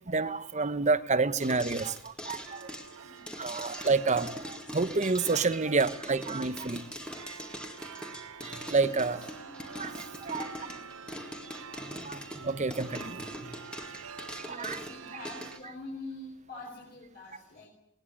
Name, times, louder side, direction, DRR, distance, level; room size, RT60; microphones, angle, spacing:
voice 1, 0.1-2.4 3.4-6.8 8.4-9.2 9.8-9.9 10.2-10.4 12.0-13.2 14.5-14.8, right 4 dB, 35° right, 14 dB, 0.9 m, -29 dB
sound 1, 1.4-15.6, equal, 5° left, 2.0 m, -42 dB
sound 2, 2.5-15.6, right 6 dB, 65° right, 0.9 m, -47 dB
voice 2, 3.0-3.8 5.4-5.5 8.8-9.3 10.2-10.8 14.3-17.7, left 2 dB, 45° left, -1 dB, 4.4 m, -46 dB
20.0 x 19.0 x 9.9 m, 0.78 s
head